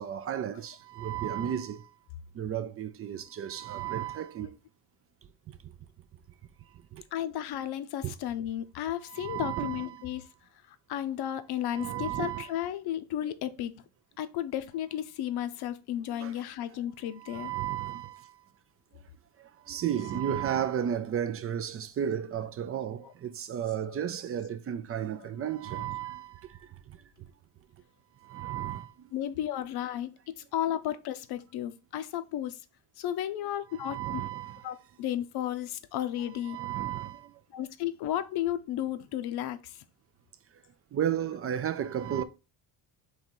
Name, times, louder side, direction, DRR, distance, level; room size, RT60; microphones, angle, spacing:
voice 1, 0.0-1.9 2.3-4.6 5.5-5.6 6.9-7.0 8.0-8.1 9.0-10.1 11.7-12.5 16.2-16.4 17.1-18.4 19.4-27.0 28.2-29.1 33.7-34.8 36.4-37.3 40.9-42.2, right 9 dB, 35° right, 0.4 m, -34 dB
voice 2, 7.1-10.3 10.7-13.7 14.2-17.5 23.9-24.0 25.7-25.8 29.1-32.6 33.0-34.2 34.6-36.6 37.5-39.8, left 11 dB, 60° left, 0.7 m, -33 dB
3.9 x 3.1 x 4.4 m
cardioid pair, 125°, 45 cm